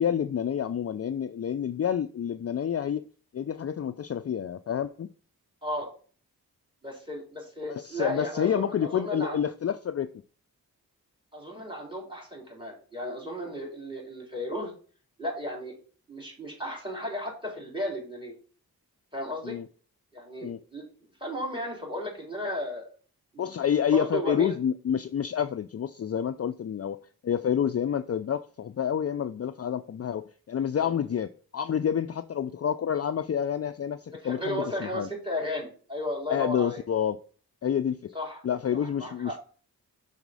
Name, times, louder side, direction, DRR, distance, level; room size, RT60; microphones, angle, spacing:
voice 1, 0.0-3.0 3.3-5.1 7.7-10.1 19.4-19.7 20.4-20.6 23.4-35.1 36.3-37.2 37.6-38.1 38.4-39.4, left 8 dB, 40° left, 0.4 m, -28 dB
voice 2, 6.8-9.4 11.3-14.7 15.2-15.7 16.1-18.3 19.1-19.6 20.1-20.9 21.2-22.9 23.3-23.5 23.9-24.6 30.8-30.9 34.1-36.8 38.1-38.4 38.7-39.4, left 1 dB, 15° right, 4.0 m, -34 dB
5.9 x 4.2 x 5.3 m
cardioid pair, 45°, 38 cm